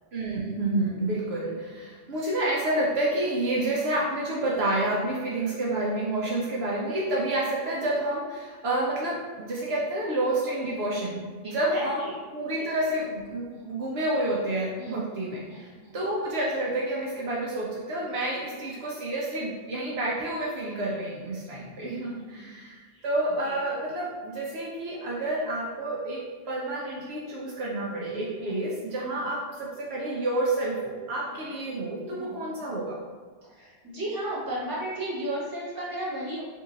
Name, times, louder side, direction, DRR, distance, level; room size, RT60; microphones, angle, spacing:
voice 1, 0.1-12.0 12.3-26.2 26.5-33.0, right 1 dB, 70° right, -4 dB, 0.9 m, -29 dB
voice 2, 11.4-12.2 12.6-12.7 13.5-13.8 14.8-15.2 15.5-15.9 21.9-22.5 22.9-23.0 23.4-23.6 27.6-27.8 28.4-28.6 29.1-29.2 31.3-31.4 32.1-32.5 33.5-36.4, right 1 dB, 20° right, -8 dB, 1.3 m, -36 dB
3.6 x 2.6 x 3.9 m, 1.5 s
omnidirectional pair, 1.1 m